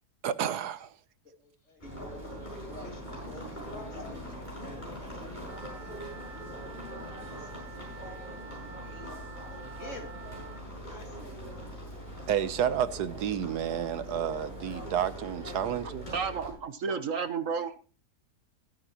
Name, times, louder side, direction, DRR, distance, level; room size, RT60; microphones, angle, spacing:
voice 1, 0.2-0.9 12.3-16.1, right 9 dB, 90° right, 1.4 m, -30 dB
voice 2, 1.4-9.2 9.5-10.1 10.8-11.8, left 1 dB, 50° left, 3.0 m, -51 dB
sound 1, 1.8-16.5, equal, 25° left, 7.4 m, -42 dB
Wind instrument woodwind instrument, 5.4-10.6, right 5 dB, 35° right, 1.3 m, -49 dB
voice 3, 16.1-17.8, right 5 dB, 55° right, 1.4 m, -32 dB
21.5 x 9.1 x 3.0 m
omnidirectional pair, 1.7 m